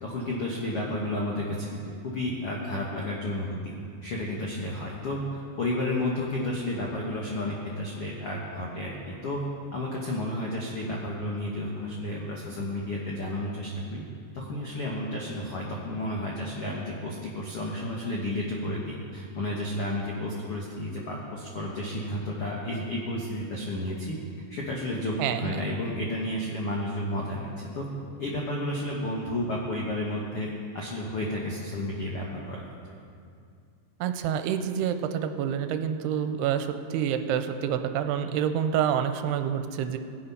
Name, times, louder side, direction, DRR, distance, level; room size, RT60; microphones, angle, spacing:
voice 1, 0.0-3.7 4.0-9.4 9.7-14.0 14.3-24.2 24.5-27.9 28.2-32.6, left 1 dB, 75° left, -3 dB, 1.3 m, -32 dB
voice 2, 25.2-25.6 34.0-40.0, right 9 dB, 90° right, 8 dB, 2.7 m, -28 dB
17.5 x 8.7 x 5.6 m, 2.3 s
omnidirectional pair, 4.7 m